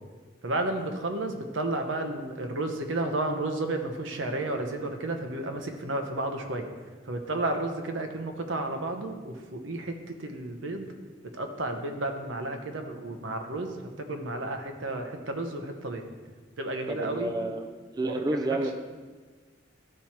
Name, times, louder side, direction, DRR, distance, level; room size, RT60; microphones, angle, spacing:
voice 1, 0.4-6.7 7.1-9.9 10.2-10.9 11.3-13.7 14.1-16.0 16.6-17.3 18.0-18.5, right 2 dB, 85° right, 5 dB, 0.9 m, -32 dB
voice 2, 16.9-18.8, right 2 dB, 20° right, 5 dB, 0.4 m, -30 dB
12.5 x 4.4 x 4.5 m, 1.4 s
head